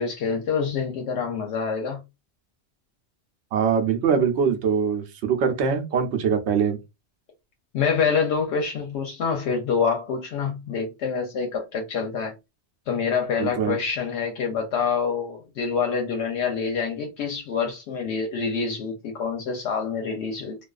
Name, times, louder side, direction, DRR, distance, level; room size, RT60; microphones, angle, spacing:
voice 1, 0.0-2.0 7.7-12.3 12.9-20.6, left 6 dB, 85° left, 0.9 m, -26 dB
voice 2, 3.5-6.8 13.4-13.8, right 6 dB, 85° right, 0.9 m, -23 dB
2.4 x 2.3 x 2.3 m
omnidirectional pair, 1.1 m